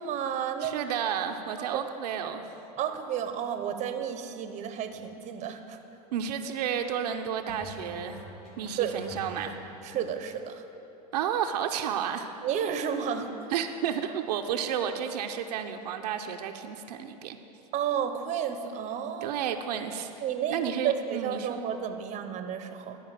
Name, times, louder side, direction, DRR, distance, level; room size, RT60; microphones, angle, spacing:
voice 1, 0.0-0.8 1.6-1.8 2.8-5.8 8.8-9.0 9.8-10.6 12.4-13.3 17.7-19.4 20.2-23.0, right 8 dB, 35° right, 8 dB, 0.7 m, -32 dB
voice 2, 0.6-2.4 6.1-8.2 8.6-9.6 11.1-12.3 13.5-17.4 19.2-20.1 20.5-21.6, right 8 dB, 85° right, 5 dB, 0.6 m, -31 dB
sound 1, 4.8-5.0 7.5-10.1, left 1 dB, 75° left, 1.8 m, -46 dB
11.5 x 4.7 x 6.6 m, 3.0 s
supercardioid pair, 110°, 20 cm